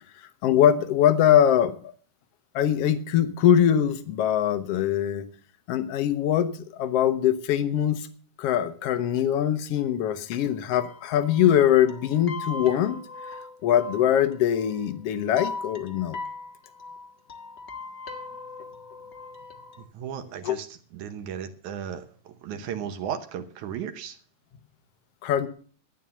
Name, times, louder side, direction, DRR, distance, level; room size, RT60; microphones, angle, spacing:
voice 1, 0.4-1.7 2.5-5.2 5.7-8.1 8.4-13.0 13.6-16.2 20.4-20.6 25.2-25.5, left 10 dB, 60° left, 11 dB, 1.8 m, -22 dB
sound 1, 9.8-9.9 10.1-10.2 10.4-10.5 10.7-19.8, left 3 dB, 35° left, 1.0 m, -40 dB
voice 2, 19.8-24.2, right 8 dB, 75° right, 8 dB, 2.3 m, -35 dB
12.5 x 9.2 x 7.0 m, 0.44 s
omnidirectional pair, 3.6 m